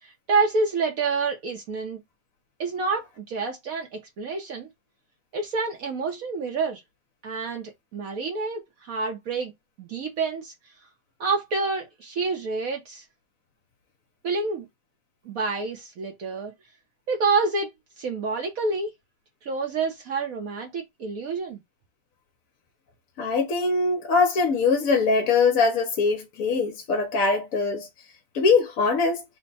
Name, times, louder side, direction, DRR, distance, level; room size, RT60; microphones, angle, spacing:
voice 1, 0.0-2.0 2.6-4.7 5.3-6.8 7.2-9.5 9.8-10.5 11.2-13.0 14.2-14.7 15.2-16.5 17.1-17.7 18.0-18.9 19.4-21.6, right 4 dB, 60° right, 1.1 m, -28 dB
voice 2, 23.2-27.9 28.3-29.2, left 4 dB, 60° left, 1.0 m, -22 dB
3.4 x 2.2 x 3.9 m
omnidirectional pair, 1.9 m